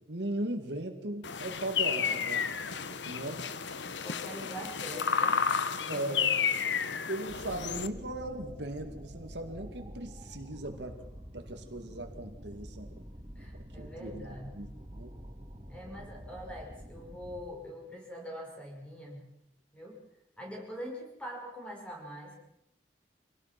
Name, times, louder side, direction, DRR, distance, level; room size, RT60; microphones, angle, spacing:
voice 1, 0.1-2.6 2.9-3.5 5.9-6.3 6.9-11.0 11.3-13.0 13.8-14.7 15.0-15.1, right 1 dB, 75° right, 5 dB, 2.2 m, -38 dB
sound 1, 1.2-7.9, left 6 dB, 85° left, 1.1 m, -31 dB
voice 2, 4.0-5.4 5.9-6.2 6.5-7.0 13.4-14.7 15.7-19.3 19.7-20.0 20.4-22.4, equal, 5° left, -1 dB, 5.5 m, -44 dB
sound 2, 7.3-17.4, equal, 30° right, 3.3 m, -47 dB
25.5 x 18.0 x 6.0 m, 0.81 s
head